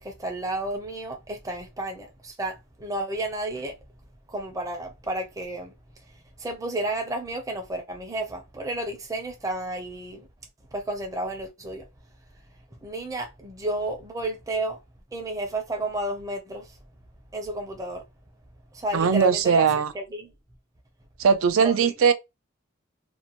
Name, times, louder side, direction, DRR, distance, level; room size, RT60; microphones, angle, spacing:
voice 1, 0.0-3.7 4.3-5.7 6.4-10.3 10.7-11.8 12.8-14.8 15.1-16.8 17.3-18.0 18.7-19.7 19.9-20.3 21.6-21.9, right 1 dB, 15° right, 0.5 m, -32 dB
voice 2, 18.9-19.9 21.2-22.1, right 6 dB, 85° right, 0.4 m, -20 dB
2.6 x 2.1 x 2.8 m
head